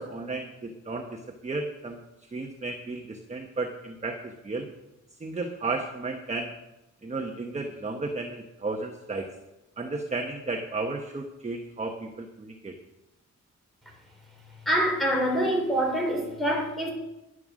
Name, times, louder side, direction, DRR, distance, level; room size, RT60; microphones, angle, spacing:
voice 1, 0.0-2.0 2.3-4.7 5.2-6.5 7.0-9.3 9.8-12.8, right 3 dB, 20° right, 3 dB, 0.9 m, -33 dB
voice 2, 14.6-16.9, equal, ahead, 0 dB, 3.3 m, -25 dB
11.0 x 11.0 x 6.2 m, 0.95 s
wide cardioid pair, 175°, 31 cm